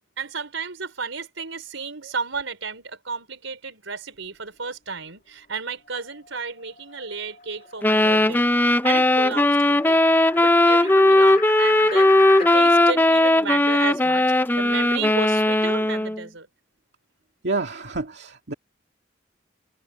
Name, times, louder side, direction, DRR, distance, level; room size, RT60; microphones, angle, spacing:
voice 1, 0.2-8.4 8.8-14.2 14.6-16.5, right 5 dB, 80° right, 4.9 m, -33 dB
sound 1, 5.9-12.7, left 6 dB, 45° left, 2.5 m, -39 dB
sound 2, 7.8-16.2, left 1 dB, 10° left, 0.5 m, -18 dB
voice 2, 17.4-18.5, right 3 dB, 60° right, 2.2 m, -29 dB
head